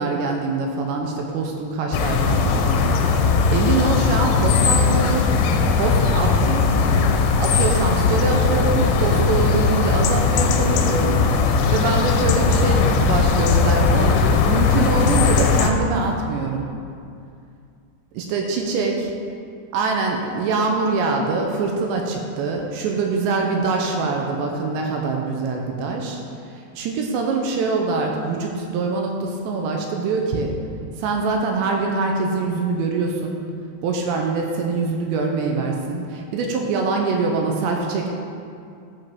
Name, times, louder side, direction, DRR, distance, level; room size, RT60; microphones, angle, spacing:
voice 1, 0.0-3.2 3.5-5.3 5.7-6.8 7.4-11.2 11.7-14.1 14.5-16.7 18.1-19.1 19.7-26.2 26.5-30.6 31.0-33.4 33.8-38.1, right 4 dB, 80° right, 1 dB, 2.8 m, -24 dB
sound 1, 1.9-15.7, left 4 dB, 90° left, 3.0 m, -18 dB
12.0 x 5.2 x 4.4 m, 2.4 s
omnidirectional pair, 5.3 m